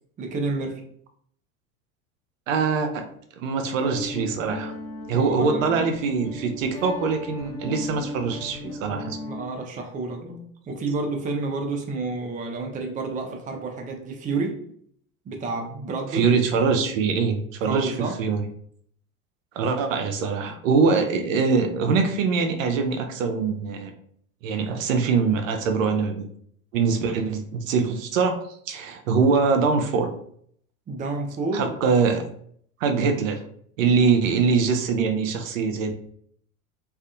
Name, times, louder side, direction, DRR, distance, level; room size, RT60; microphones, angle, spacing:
voice 1, 0.2-0.8 5.1-5.7 9.2-14.6 15.3-16.2 17.6-18.2 30.9-31.7, right 3 dB, 20° right, 2 dB, 0.5 m, -30 dB
voice 2, 2.5-3.0 3.4-4.7 5.1-9.2 16.1-18.4 19.5-23.9 24.4-26.3 26.7-28.4 28.7-30.1 31.5-32.2 32.8-33.4 33.8-36.0, right 5 dB, 70° right, 5 dB, 0.5 m, -23 dB
Guitar, 3.8-9.4, left 1 dB, 85° left, 1.0 m, -35 dB
2.5 x 2.4 x 2.4 m, 0.64 s
figure-of-eight pair, 70°, 41 cm